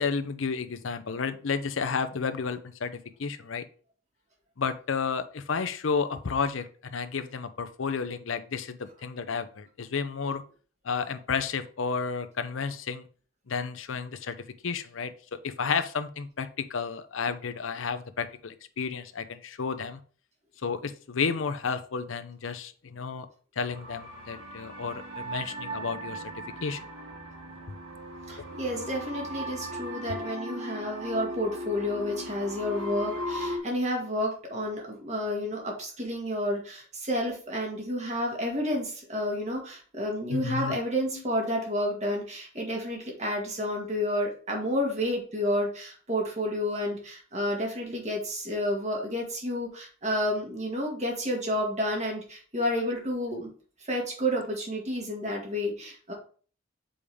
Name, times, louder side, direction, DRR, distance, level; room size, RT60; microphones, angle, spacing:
voice 1, 0.0-3.6 4.6-10.4 10.8-13.0 13.5-14.3 14.6-15.1 15.4-20.0 20.6-23.3 23.6-26.2 26.6-26.8 28.8-28.9 30.2-30.3 40.3-40.8 41.1-41.2 52.8-52.9, left 5 dB, 75° left, 10 dB, 0.6 m, -32 dB
sound 1, 23.7-33.6, equal, 85° right, 1.6 m, -38 dB
voice 2, 28.3-53.5 53.9-56.1, equal, 35° right, 0 dB, 2.0 m, -30 dB
7.0 x 5.0 x 3.5 m, 0.42 s
head